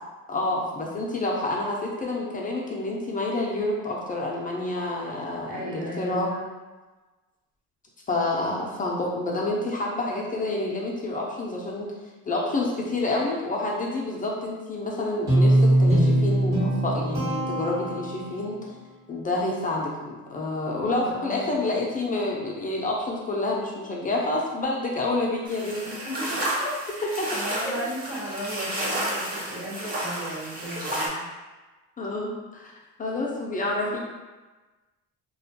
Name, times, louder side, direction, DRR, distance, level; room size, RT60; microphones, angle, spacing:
voice 1, 0.3-6.3 8.1-11.9 12.3-18.6 19.1-25.8 26.6-26.7 27.2-27.7 32.0-32.7 33.0-34.0, left 2 dB, 25° left, -3 dB, 0.4 m, -28 dB
voice 2, 5.5-6.5 20.8-21.6 25.8-26.5 26.8-31.3, right 1 dB, 80° right, -7 dB, 1.1 m, -36 dB
Guitar, 15.3-18.5, right 1 dB, 55° right, 1.1 m, -21 dB
sound 1, 25.5-31.1, right 1 dB, 25° right, 0.6 m, -31 dB
2.3 x 2.2 x 2.7 m, 1.2 s
cardioid pair, 105°, 33 cm